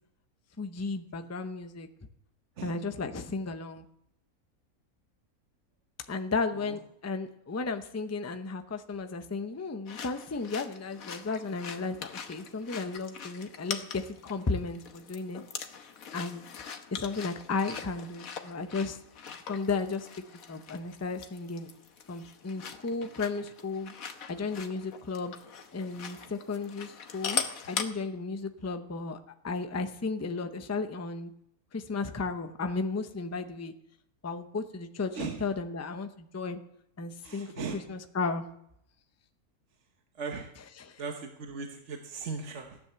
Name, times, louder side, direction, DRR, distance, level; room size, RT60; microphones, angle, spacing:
voice 1, 0.6-1.9 2.6-3.8 6.1-15.4 16.1-16.4 16.9-19.0 19.5-20.1 20.5-21.7 22.1-23.9 24.3-25.3 25.7-29.2 29.4-31.3 31.7-33.7 34.2-36.6 37.0-38.4 40.8-41.0, left 4 dB, 20° left, 7 dB, 0.5 m, -34 dB
sound 1, 9.9-27.9, left 7 dB, 70° left, 1.5 m, -41 dB
voice 2, 35.1-35.4 37.2-37.8 40.2-40.5 41.0-42.8, right 5 dB, 55° right, 3 dB, 1.4 m, -38 dB
15.0 x 10.0 x 6.9 m, 0.76 s
omnidirectional pair, 1.5 m